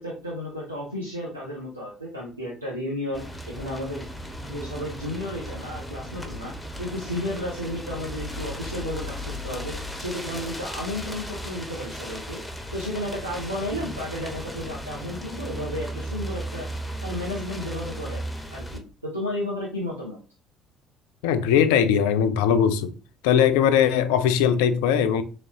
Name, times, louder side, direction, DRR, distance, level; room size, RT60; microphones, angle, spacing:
voice 1, 0.0-4.1 4.5-12.4 12.7-16.7 17.0-18.2 18.5-20.2, left 1 dB, 90° right, 0.7 m, -33 dB
sound 1, 3.1-18.8, equal, 5° left, 0.9 m, -36 dB
voice 2, 21.2-22.9 23.2-25.2, left 8 dB, 65° left, 0.4 m, -20 dB
4.0 x 3.1 x 2.8 m
figure-of-eight pair, 50°, 0 cm